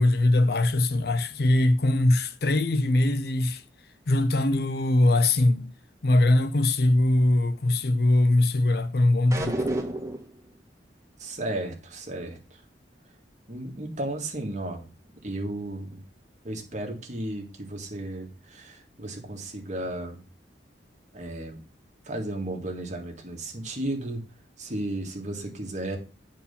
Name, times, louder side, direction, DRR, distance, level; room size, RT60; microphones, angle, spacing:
voice 1, 0.0-3.6 4.1-5.7 6.0-9.6, left 1 dB, 60° left, 0.7 m, -22 dB
sound 1, 9.3-10.3, right 1 dB, 15° right, 1.2 m, -29 dB
voice 2, 11.2-12.4 13.5-14.9 15.2-16.0 16.4-20.2 21.1-21.6 22.1-24.2 24.6-26.0, right 1 dB, 40° right, 1.9 m, -34 dB
8.8 x 4.6 x 5.6 m
head